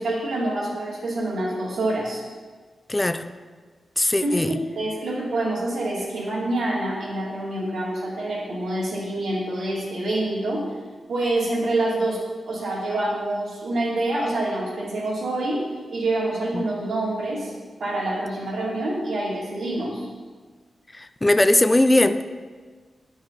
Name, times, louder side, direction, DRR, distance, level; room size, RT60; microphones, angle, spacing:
voice 1, 0.0-2.2 4.2-10.8 11.1-17.5 17.8-20.1, right 1 dB, 85° right, -5 dB, 2.3 m, -26 dB
voice 2, 2.9-3.2 4.0-4.6 16.5-16.6 20.9-22.2, left 1 dB, 25° left, 10 dB, 0.4 m, -19 dB
9.8 x 4.7 x 4.4 m, 1.5 s
cardioid pair, 50°, 0 cm